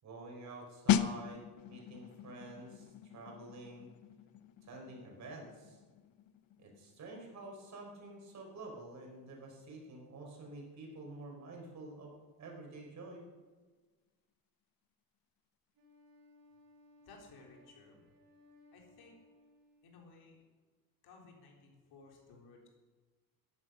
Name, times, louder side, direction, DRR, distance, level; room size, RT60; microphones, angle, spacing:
voice 1, 0.0-1.4 1.7-3.9 4.7-5.8 6.6-12.1 12.4-13.2, right 2 dB, 50° right, 0 dB, 5.0 m, -49 dB
sound 1, 0.9-11.4 11.7-11.9, left 10 dB, 65° left, 0.8 m, -39 dB
Wind instrument woodwind instrument, 15.7-20.1, left 1 dB, 65° right, 4.5 m, -64 dB
voice 2, 17.0-18.0 18.7-19.2 19.8-20.4 21.0-22.7, left 3 dB, 80° left, 1 dB, 3.9 m, -58 dB
14.5 x 11.0 x 6.5 m, 1.3 s
cardioid pair, 125°, 37 cm